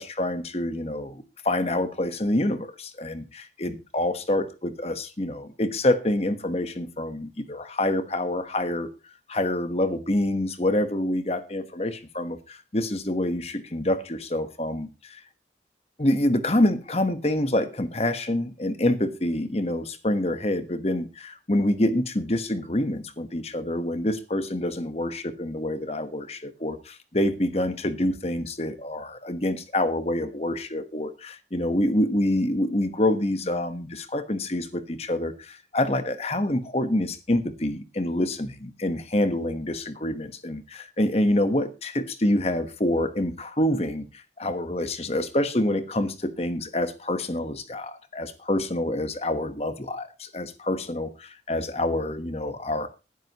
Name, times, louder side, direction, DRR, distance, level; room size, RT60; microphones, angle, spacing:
voice 1, 0.0-8.9 9.3-15.2 16.0-52.9, left 1 dB, 35° left, 10 dB, 1.3 m, -27 dB
19.5 x 10.0 x 3.0 m, 0.29 s
head